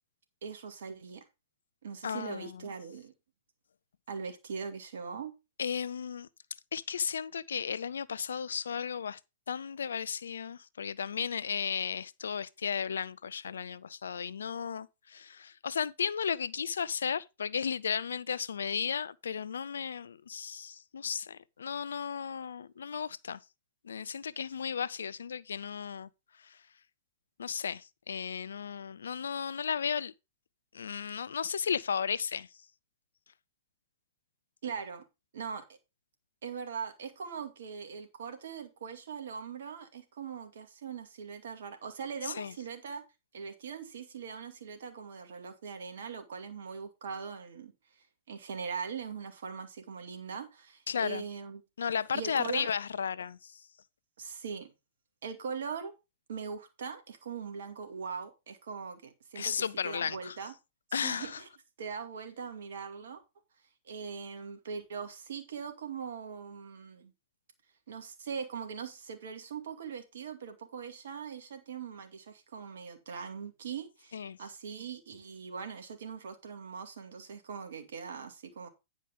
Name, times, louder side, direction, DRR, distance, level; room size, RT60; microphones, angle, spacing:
voice 1, 0.4-1.3 1.8-3.1 4.1-5.3 34.6-35.1 35.3-35.7 36.4-43.0 43.3-51.6 52.1-52.7 54.2-54.7 55.2-55.9 56.3-60.5 61.0-61.5 61.8-63.2 63.8-67.1 67.9-78.7, right 6 dB, 65° right, 2.3 m, -41 dB
voice 2, 2.0-2.7 5.6-6.3 6.7-9.2 9.5-23.4 23.8-26.1 26.4-26.6 27.4-30.1 30.7-32.5 42.2-42.5 50.9-51.2 51.8-53.7 59.4-60.4 60.9-61.4 74.1-74.4, left 7 dB, 75° left, 0.4 m, -34 dB
10.0 x 5.0 x 5.1 m
figure-of-eight pair, 110°, 0 cm